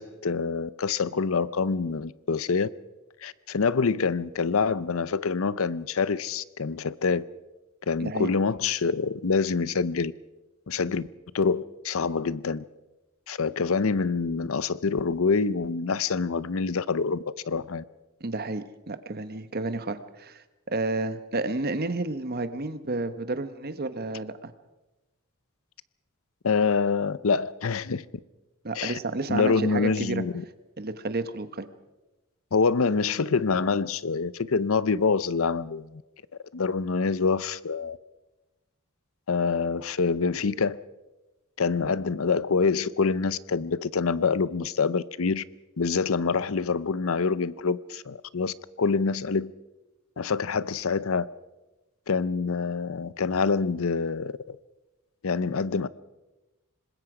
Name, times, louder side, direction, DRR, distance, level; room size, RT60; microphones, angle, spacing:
voice 1, 0.0-2.7 3.2-7.2 7.9-10.1 10.7-11.1 11.3-12.6 13.3-17.2 17.5-17.8 26.4-28.0 28.7-29.0 29.3-30.4 32.5-36.0 36.5-38.0 39.3-40.8 41.6-45.4 45.8-49.5 50.2-51.3 52.1-54.6 55.2-55.9, left 5 dB, 70° left, 0.6 m, -26 dB
voice 2, 18.2-24.5 28.6-30.2 30.8-31.7, right 2 dB, 45° right, 1.1 m, -31 dB
26.0 x 20.5 x 5.0 m
head